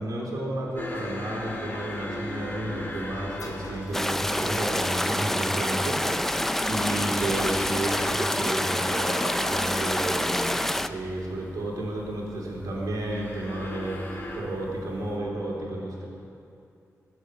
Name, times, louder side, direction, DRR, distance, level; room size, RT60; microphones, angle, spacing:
voice 1, 0.0-10.6 10.9-14.0 14.3-16.0, right 1 dB, 85° right, -3 dB, 3.6 m, -32 dB
sound 1, 0.7-15.2, left 1 dB, 35° left, 2.5 m, -40 dB
sound 2, 2.9-4.8 5.6-5.7 6.4-8.4, left 3 dB, 80° left, 2.7 m, -47 dB
sound 3, 3.9-10.9, left 1 dB, 5° left, 0.4 m, -27 dB
20.5 x 7.8 x 8.2 m, 2.6 s
wide cardioid pair, 140°, 6 cm